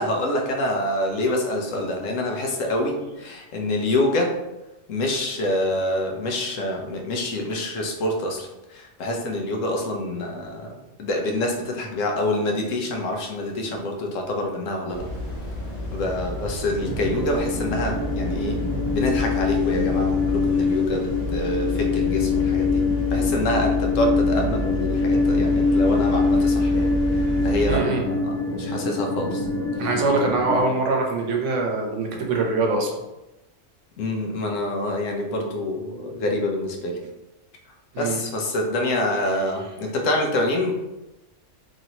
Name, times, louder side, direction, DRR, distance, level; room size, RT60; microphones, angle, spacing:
voice 1, 0.0-4.3 4.9-15.1 15.9-18.6 18.9-22.8 23.1-29.5 34.0-37.0 38.0-40.7, left 1 dB, 80° left, 1 dB, 1.0 m, -26 dB
voice 2, 2.5-3.0 27.6-28.0 29.8-32.9 37.9-38.2, right 3 dB, 70° right, 1 dB, 0.9 m, -24 dB
sound 1, 14.9-27.8, left 1 dB, 35° left, 1.1 m, -30 dB
sound 2, 16.8-30.6, left 4 dB, 15° left, 0.5 m, -24 dB
3.0 x 2.7 x 2.8 m, 0.99 s
omnidirectional pair, 1.3 m